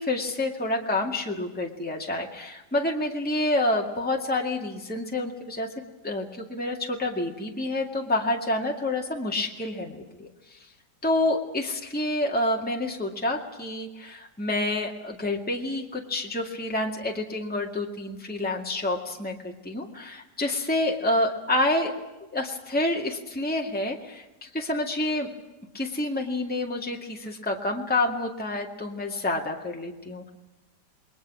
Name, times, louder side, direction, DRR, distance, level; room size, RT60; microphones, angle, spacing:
voice 1, 0.0-5.7 6.0-10.6 11.0-21.9 22.3-25.3 25.7-30.3, left 1 dB, 5° left, 0 dB, 2.1 m, -28 dB
28.0 x 21.5 x 6.2 m, 1.0 s
omnidirectional pair, 1.8 m